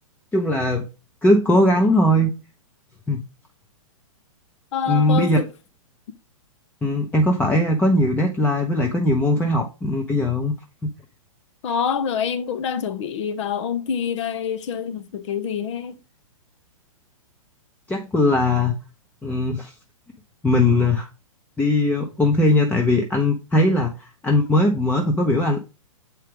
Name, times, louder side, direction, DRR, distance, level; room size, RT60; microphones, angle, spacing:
voice 1, 0.3-0.9 1.2-2.3 3.1-3.2 4.9-5.4 6.8-10.5 10.8-10.9 17.9-18.7 19.2-19.7 20.4-21.1 21.6-25.6, left 1 dB, 10° left, 0.8 m, -19 dB
voice 2, 4.7-5.5 11.6-16.0, left 7 dB, 55° left, 0.9 m, -26 dB
7.6 x 4.6 x 3.5 m
hypercardioid pair, 120°, 18 cm